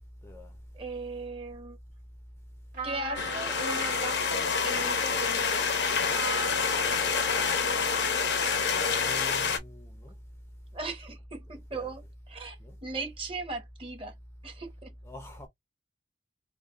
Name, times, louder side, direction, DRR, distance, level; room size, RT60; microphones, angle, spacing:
voice 1, 0.2-0.6 7.0-7.4 7.7-7.8 8.9-10.2 11.7-11.9 12.6-12.8 15.0-15.5, left 1 dB, 15° left, 0.7 m, -45 dB
voice 2, 0.7-1.8 2.8-5.7 10.7-14.1 14.4-14.9, right 3 dB, 30° right, 1.3 m, -38 dB
Trumpet, 2.7-9.4, right 1 dB, 50° right, 2.2 m, -40 dB
sound 1, 3.1-9.6, left 5 dB, 70° left, 0.9 m, -27 dB
4.9 x 2.3 x 2.5 m
head